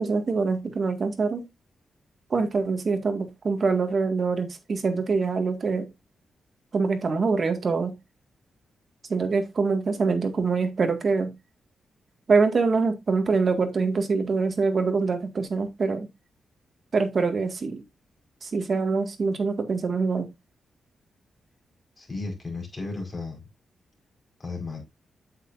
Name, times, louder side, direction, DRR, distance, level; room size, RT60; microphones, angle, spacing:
voice 1, 0.0-1.4 2.3-5.9 6.7-7.9 9.1-11.3 12.3-16.1 16.9-17.8 18.4-20.3, right 4 dB, 45° right, 1.9 m, -24 dB
voice 2, 22.0-23.4 24.4-24.8, left 3 dB, 30° left, 5.0 m, -34 dB
8.8 x 7.8 x 2.6 m
cardioid pair, 100°, 0 cm